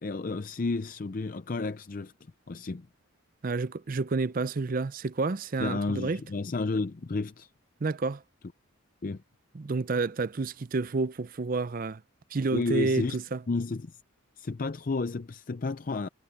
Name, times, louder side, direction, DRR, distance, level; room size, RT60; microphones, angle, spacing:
voice 1, 0.0-2.1 2.5-2.9 5.6-7.5 9.0-9.2 12.5-13.2 13.5-14.0 14.4-16.1, left 3 dB, 40° left, 0.5 m, -31 dB
voice 2, 3.4-6.2 7.8-8.2 9.5-12.0 12.3-13.4, right 3 dB, 40° right, 0.5 m, -29 dB
head